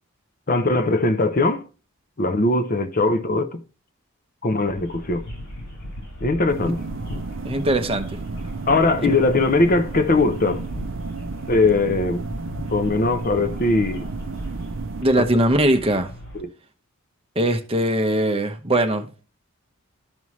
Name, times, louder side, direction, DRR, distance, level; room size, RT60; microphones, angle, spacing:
voice 1, 0.5-1.6 2.2-3.6 4.4-5.2 6.2-6.8 8.7-10.7 11.5-12.3 12.7-14.0 15.2-15.3 16.3-16.5, left 2 dB, 40° left, 0.7 m, -20 dB
sound 1, 4.7-16.4, equal, 70° left, 3.9 m, -38 dB
sound 2, 6.5-15.0, right 3 dB, 55° right, 0.5 m, -33 dB
voice 2, 7.4-8.2 15.0-16.1 17.4-19.3, right 1 dB, 25° right, 0.9 m, -21 dB
12.5 x 5.5 x 3.1 m
head